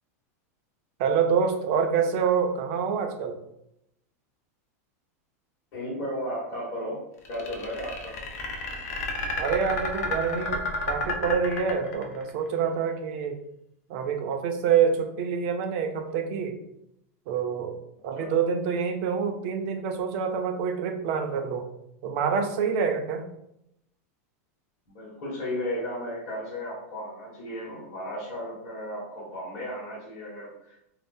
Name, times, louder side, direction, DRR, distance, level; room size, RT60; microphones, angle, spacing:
voice 1, 1.0-3.4 9.4-13.4 13.9-16.6 17.3-17.7 18.0-21.7 22.0-23.3, right 6 dB, 45° right, 5 dB, 0.5 m, -26 dB
voice 2, 5.7-7.0 7.3-8.2 18.1-18.3 24.9-30.9, equal, 50° left, -9 dB, 1.2 m, -34 dB
sound 1, 7.2-12.3, left 2 dB, 75° left, 0.6 m, -31 dB
2.6 x 2.0 x 3.4 m, 0.79 s
supercardioid pair, 160°, 8 cm